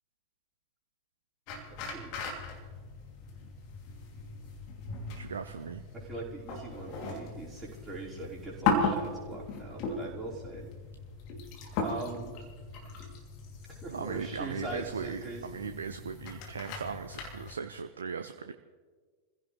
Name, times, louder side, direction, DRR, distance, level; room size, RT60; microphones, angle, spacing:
sound 1, 1.5-17.5, left 3 dB, 45° left, 3.1 m, -37 dB
voice 1, 1.8-2.1 5.9-10.6 11.8-12.4 13.8-15.4, right 2 dB, 15° right, -6 dB, 5.2 m, -41 dB
voice 2, 5.2-5.8 13.9-18.5, right 6 dB, 70° right, 9 dB, 0.7 m, -38 dB
27.5 x 16.0 x 3.4 m, 1.5 s
figure-of-eight pair, 90°, 0 cm